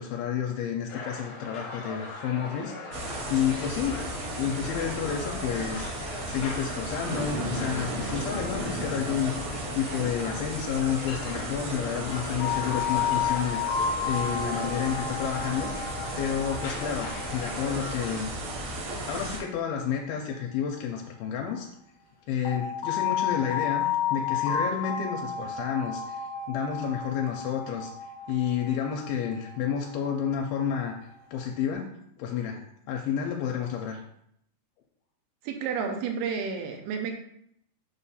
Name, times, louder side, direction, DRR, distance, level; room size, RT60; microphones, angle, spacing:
voice 1, 0.0-3.0 3.3-4.1 4.4-5.9 6.3-9.3 9.7-13.6 14.1-15.7 16.2-18.3 19.1-21.7 22.3-26.2 26.5-27.9 28.3-30.9 31.3-31.9 32.2-32.6 32.9-34.0, left 8 dB, 80° left, 2 dB, 2.4 m, -30 dB
sound 1, 0.9-18.2, left 2 dB, 65° left, 1.6 m, -40 dB
sound 2, 2.9-19.4, right 1 dB, 65° right, 1.7 m, -35 dB
sound 3, 12.4-21.2 22.4-31.6, left 7 dB, 45° left, 0.9 m, -33 dB
voice 2, 35.4-37.1, right 6 dB, 90° right, 3 dB, 2.8 m, -31 dB
7.0 x 2.5 x 5.5 m, 0.72 s
omnidirectional pair, 4.4 m